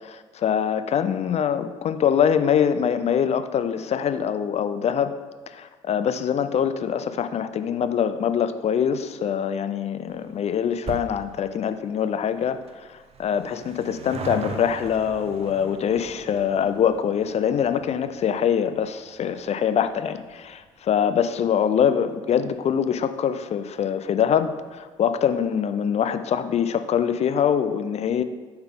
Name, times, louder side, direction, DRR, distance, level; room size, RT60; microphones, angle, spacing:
voice 1, 0.0-5.1 5.5-12.6 12.9-28.2, left 8 dB, 40° left, 11 dB, 0.5 m, -24 dB
sound 1, 10.1-22.8 23.1-23.2 24.1-24.2 24.4-24.5 24.8-24.9, right 6 dB, 40° right, 0.7 m, -42 dB
8.6 x 3.9 x 3.7 m, 1.4 s
hypercardioid pair, 55°, 16 cm